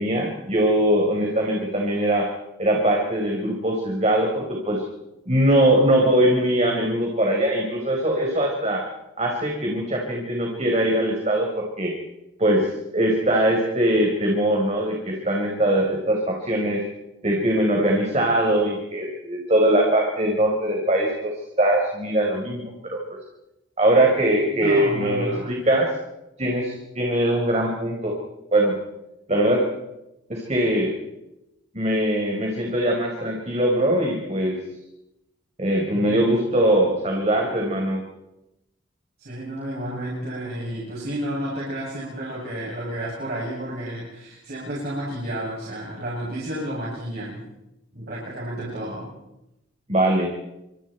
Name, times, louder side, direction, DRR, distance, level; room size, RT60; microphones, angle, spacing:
voice 1, 0.0-2.3 2.6-4.8 5.3-8.8 9.2-11.9 12.4-12.7 12.9-16.8 17.2-23.0 23.8-25.9 26.4-28.1 28.5-28.7 29.3-29.6 30.3-30.9 31.7-34.6 35.6-38.0 49.9-50.3, right 1 dB, 35° right, 0 dB, 4.4 m, -21 dB
voice 2, 24.5-25.5 35.9-36.2 39.2-47.4 47.9-49.1, right 1 dB, 50° right, -6 dB, 7.8 m, -31 dB
29.0 x 26.0 x 4.5 m, 0.90 s
head